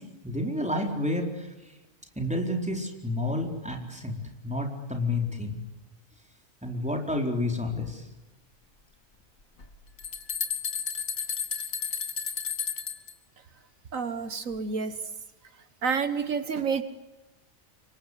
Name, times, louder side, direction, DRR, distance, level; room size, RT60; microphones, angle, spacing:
voice 1, 0.0-1.7 2.2-4.2 4.4-5.6 6.6-8.1, left 1 dB, 5° right, 2 dB, 4.4 m, -30 dB
sound 1, 9.6-13.1, left 7 dB, 85° left, 2.4 m, -32 dB
voice 2, 13.9-14.9 15.8-16.8, right 5 dB, 75° right, 10 dB, 1.7 m, -29 dB
29.5 x 24.5 x 8.2 m, 1.1 s
omnidirectional pair, 1.4 m